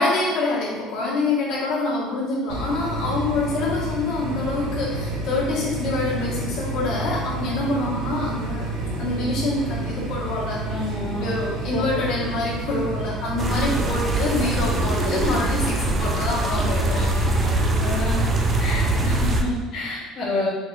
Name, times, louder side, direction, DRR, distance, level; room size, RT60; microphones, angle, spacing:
voice 1, 0.0-8.7 9.0-17.2, left 2 dB, 60° left, -6 dB, 1.2 m, -26 dB
sound 1, 2.5-19.3, right 2 dB, 75° right, 0.6 m, -29 dB
voice 2, 10.7-11.2 11.7-11.8 17.4-18.2 18.6-20.5, left 2 dB, 35° left, -7 dB, 0.7 m, -29 dB
sound 2, 13.4-19.4, right 1 dB, 20° right, 0.3 m, -23 dB
4.5 x 2.4 x 3.1 m, 1.2 s
cardioid pair, 175°, 0 cm